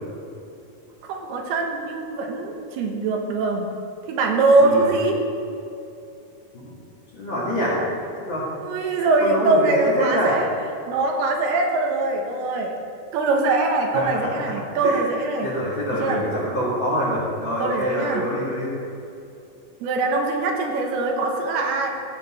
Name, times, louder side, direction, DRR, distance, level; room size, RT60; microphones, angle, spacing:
voice 1, 1.0-3.7 4.1-5.2 8.6-10.5 10.9-12.8 13.1-15.5 16.0-16.3 17.6-18.2 19.8-21.9, right 3 dB, 80° right, 2 dB, 3.1 m, -22 dB
voice 2, 7.1-7.8 8.2-8.5 9.2-10.4 13.9-14.4 14.8-15.0 15.4-18.7, equal, 40° left, -7 dB, 2.0 m, -25 dB
14.5 x 8.3 x 4.2 m, 2.7 s
omnidirectional pair, 4.5 m